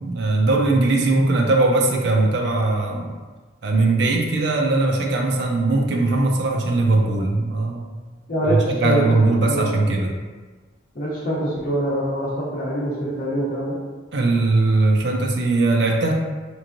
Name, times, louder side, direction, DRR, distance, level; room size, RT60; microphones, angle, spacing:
voice 1, 0.0-3.1 3.6-7.9 8.4-10.1 14.1-16.1, right 2 dB, 65° right, 1 dB, 0.5 m, -20 dB
voice 2, 8.3-9.2 9.5-9.8 10.9-13.8, right 1 dB, 45° left, -8 dB, 0.8 m, -24 dB
4.5 x 3.0 x 2.5 m, 1.3 s
head